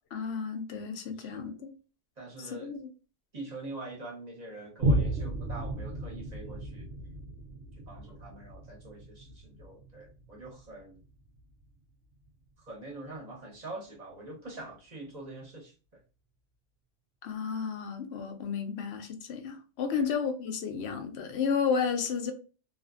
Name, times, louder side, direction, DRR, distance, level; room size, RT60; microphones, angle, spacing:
voice 1, 0.1-1.7 2.4-2.9 17.2-22.3, left 6 dB, 90° left, 0.9 m, -32 dB
voice 2, 1.2-1.5 2.2-2.7 3.3-6.9 7.8-11.0 12.6-15.7 19.9-20.1, right 2 dB, 45° right, 1.0 m, -44 dB
Boom, 4.8-11.7 12.3-12.4, right 1 dB, 90° right, 0.9 m, -34 dB
2.5 x 2.5 x 2.4 m
omnidirectional pair, 1.0 m